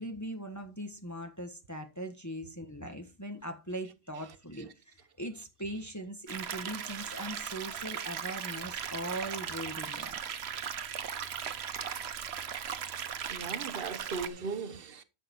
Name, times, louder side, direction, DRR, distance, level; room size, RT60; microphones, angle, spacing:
voice 1, 0.0-10.2, right 1 dB, 15° left, 1.5 m, -40 dB
sound 1, 6.3-14.3, right 8 dB, 85° right, 1.1 m, -38 dB
voice 2, 13.3-15.0, right 5 dB, 65° right, 1.2 m, -37 dB
11.5 x 6.9 x 4.4 m
omnidirectional pair, 1.1 m